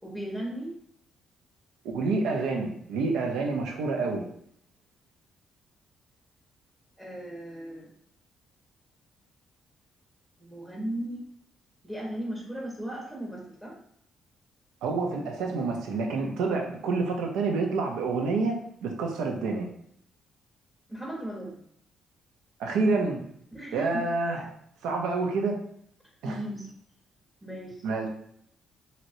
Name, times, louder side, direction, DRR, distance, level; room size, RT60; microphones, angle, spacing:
voice 1, 0.0-0.7 7.0-7.9 10.4-11.2 11.8-13.8 20.9-21.6 23.5-24.0 24.9-25.0 26.2-26.7 27.4-27.8, right 1 dB, 5° right, -2 dB, 0.8 m, -36 dB
voice 2, 1.8-4.3 14.8-19.7 22.6-23.2 23.7-24.5 24.8-25.6 26.2-26.4 27.8-28.1, right 3 dB, 90° right, 2 dB, 0.6 m, -28 dB
3.0 x 2.8 x 2.6 m, 0.68 s
cardioid pair, 90°, 0 cm